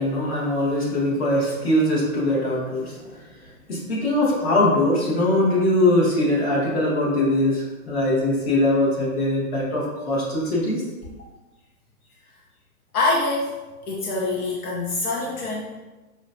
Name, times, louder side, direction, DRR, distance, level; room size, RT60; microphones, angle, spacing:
voice 1, 0.0-3.3 3.7-10.8, left 1 dB, 45° left, -5 dB, 1.3 m, -22 dB
voice 2, 12.9-13.6 13.9-15.7, left 2 dB, 80° left, -2 dB, 0.8 m, -25 dB
5.0 x 2.2 x 2.5 m, 1.2 s
hypercardioid pair, 170°, 44 cm